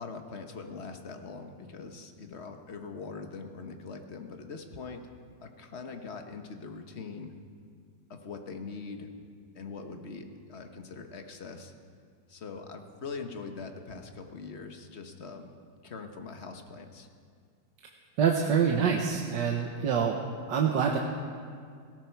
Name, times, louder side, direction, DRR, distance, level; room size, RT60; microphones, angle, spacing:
voice 1, 0.0-5.0 5.4-7.3 8.1-9.1 9.5-11.7 12.3-15.5 15.8-17.1, left 4 dB, 40° left, 5 dB, 1.2 m, -42 dB
voice 2, 18.2-20.2 20.5-21.0, right 7 dB, 70° right, 1 dB, 1.5 m, -26 dB
18.5 x 17.0 x 4.6 m, 2.2 s
omnidirectional pair, 2.0 m